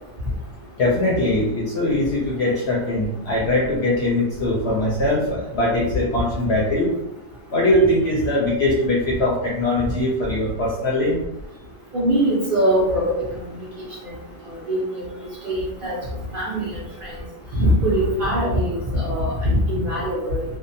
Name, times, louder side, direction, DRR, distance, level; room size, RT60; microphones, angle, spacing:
voice 1, 0.8-6.9 7.5-11.2, left 1 dB, 65° left, -4 dB, 0.7 m, -21 dB
voice 2, 11.9-13.0 13.5-13.9 14.5-14.8 15.4-16.0 16.3-17.2 17.6-20.4, equal, 50° right, -6 dB, 0.7 m, -22 dB
2.7 x 2.0 x 2.6 m, 0.89 s
omnidirectional pair, 1.5 m